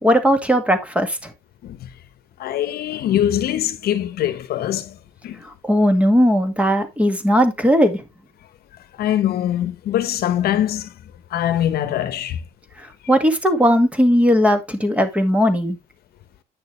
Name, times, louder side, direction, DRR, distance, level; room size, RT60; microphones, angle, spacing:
voice 1, 0.0-1.3 5.6-8.0 13.1-15.8, equal, 5° right, 2.0 m, -17 dB
voice 2, 2.4-5.0 5.2-5.4 9.0-10.9 11.3-12.4, left 11 dB, 65° left, 1.1 m, -22 dB
9.6 x 6.6 x 3.2 m
cardioid pair, 110°, 17 cm